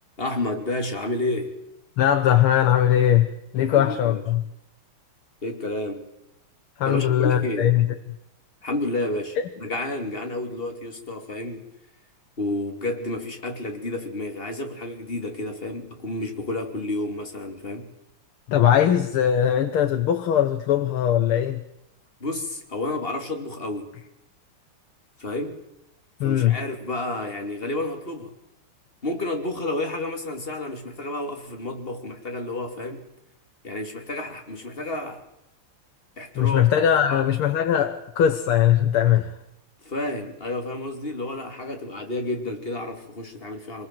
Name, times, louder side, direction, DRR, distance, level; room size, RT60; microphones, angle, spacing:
voice 1, 0.2-1.6 3.6-4.2 5.4-6.1 6.8-7.7 8.6-11.6 12.4-17.9 22.2-23.9 25.2-25.6 26.2-28.3 29.0-33.0 33.6-35.2 36.2-36.6 37.0-37.3 39.8-43.9, left 2 dB, 25° left, 3.1 m, -30 dB
voice 2, 2.0-4.4 6.8-7.9 18.5-21.6 26.2-26.6 36.4-39.3, left 10 dB, 90° left, 2.0 m, -20 dB
24.5 x 20.5 x 7.8 m
omnidirectional pair, 2.3 m